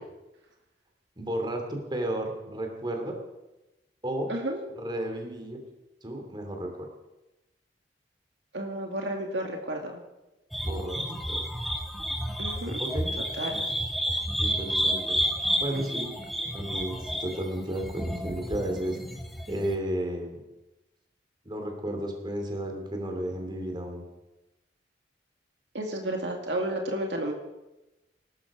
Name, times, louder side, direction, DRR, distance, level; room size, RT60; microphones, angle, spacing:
voice 1, 1.2-3.2 4.0-4.3 4.8-5.6 6.0-6.9 10.6-11.4 12.8-13.2 13.5-13.6 14.4-15.2 15.6-16.1 16.5-19.0 19.5-20.4 21.4-24.0, right 1 dB, 25° right, 3 dB, 2.8 m, -33 dB
voice 2, 4.3-4.6 8.5-10.0 12.4-12.8 13.4-13.7 25.7-27.3, right 1 dB, 80° right, 2 dB, 2.1 m, -32 dB
sound 1, 10.5-19.8, equal, ahead, 1.5 m, -30 dB
18.5 x 13.0 x 5.0 m, 1.0 s
head